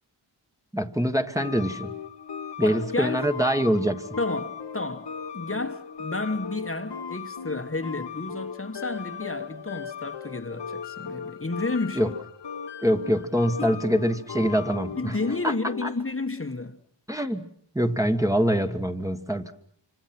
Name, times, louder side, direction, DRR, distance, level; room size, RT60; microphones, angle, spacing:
voice 1, 0.7-1.9 2.6-4.0 12.0-12.1 12.8-15.2 15.4-15.5 15.8-15.9 17.1-17.4 17.7-19.5, equal, 5° right, 1.5 m, -24 dB
sound 1, 1.4-16.1, left 6 dB, 65° left, 1.4 m, -37 dB
voice 2, 2.6-3.3 4.2-12.1 13.6-13.8 15.0-16.8, left 3 dB, 30° left, 1.3 m, -31 dB
26.5 x 26.0 x 6.0 m
wide cardioid pair, 70°, 45 cm